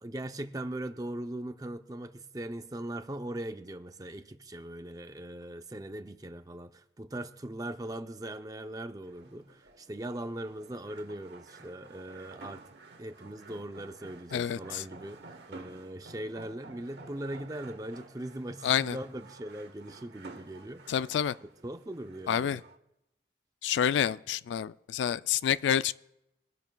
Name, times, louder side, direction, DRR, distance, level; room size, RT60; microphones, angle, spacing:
voice 1, 0.0-12.6 13.0-15.2 15.5-21.0 21.6-22.6, right 1 dB, 20° right, 0.5 m, -40 dB
sound 1, 9.0-22.8, right 3 dB, 75° right, 1.1 m, -52 dB
voice 2, 14.3-14.8 18.6-19.0 20.9-21.4 22.3-22.6 23.6-25.9, left 9 dB, 90° left, 0.3 m, -28 dB
22.5 x 10.5 x 2.3 m
head